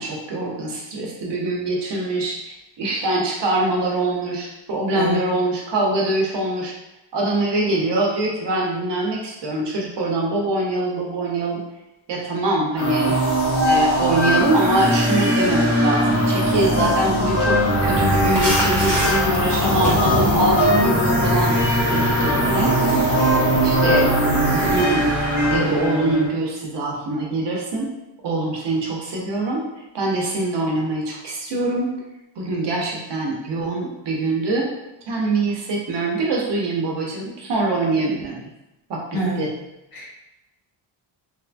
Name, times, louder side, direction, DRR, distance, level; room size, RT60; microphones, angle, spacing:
voice 1, 0.0-6.7 7.1-11.6 12.1-13.2 13.6-21.6 21.9-22.8 23.6-24.1 24.5-25.1 25.5-27.9 28.2-29.6 29.9-32.0 32.4-34.7 35.1-38.4 38.9-39.5, right 2 dB, 60° right, -2 dB, 0.8 m, -23 dB
voice 2, 4.9-5.2 39.1-39.4 39.9-40.1, right 2 dB, 45° left, -4 dB, 0.9 m, -25 dB
sound 1, 12.8-26.3, equal, 75° left, 1.4 m, -20 dB
sound 2, 17.8-24.8, equal, 5° left, 0.8 m, -25 dB
2.9 x 2.5 x 2.2 m, 0.92 s
cardioid pair, 135°, 47 cm